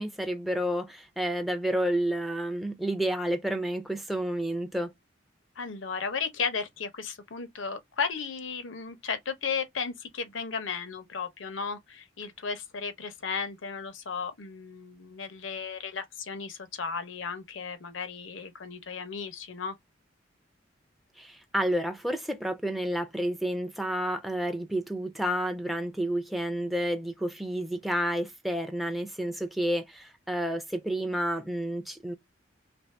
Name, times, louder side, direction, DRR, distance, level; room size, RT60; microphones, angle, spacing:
voice 1, 0.0-4.9 21.2-32.1, right 1 dB, ahead, 0.3 m, -30 dB
voice 2, 5.6-19.7, left 5 dB, 90° left, 0.8 m, -35 dB
3.1 x 2.6 x 3.2 m
head